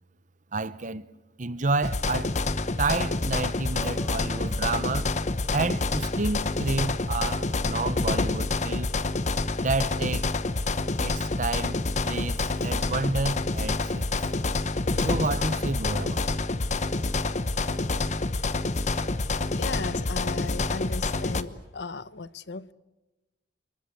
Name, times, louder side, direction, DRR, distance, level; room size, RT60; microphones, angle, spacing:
voice 1, 0.5-1.1 1.4-2.3 2.8-5.1 5.5-8.9 9.6-10.3 11.0-14.3 15.0-16.3, right 3 dB, 45° right, 0.9 m, -30 dB
sound 1, 1.8-21.4, left 2 dB, 40° left, 1.0 m, -27 dB
Piano, 3.8-5.8, equal, 15° left, 2.0 m, -49 dB
voice 2, 19.6-22.7, left 4 dB, 70° left, 0.9 m, -36 dB
28.5 x 22.0 x 8.3 m
head